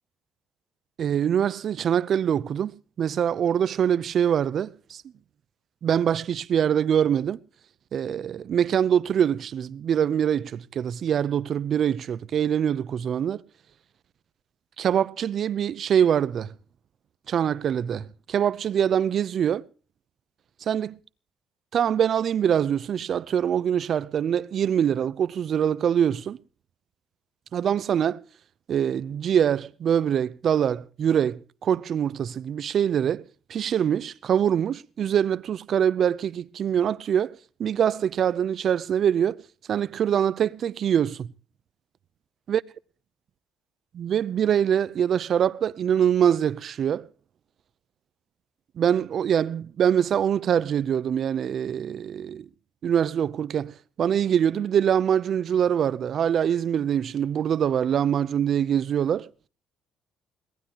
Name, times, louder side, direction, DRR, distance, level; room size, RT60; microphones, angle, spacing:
voice 1, 1.0-5.0 5.8-7.4 7.9-13.4 14.8-16.5 17.3-19.6 20.7-20.9 21.7-26.4 27.5-28.2 28.7-33.2 33.5-39.4 39.7-41.3 42.5-42.6 43.9-47.1 48.8-52.5 52.8-59.3, right 9 dB, 50° right, 0.6 m, -24 dB
22.5 x 18.0 x 3.0 m
cardioid pair, 115°, 0 cm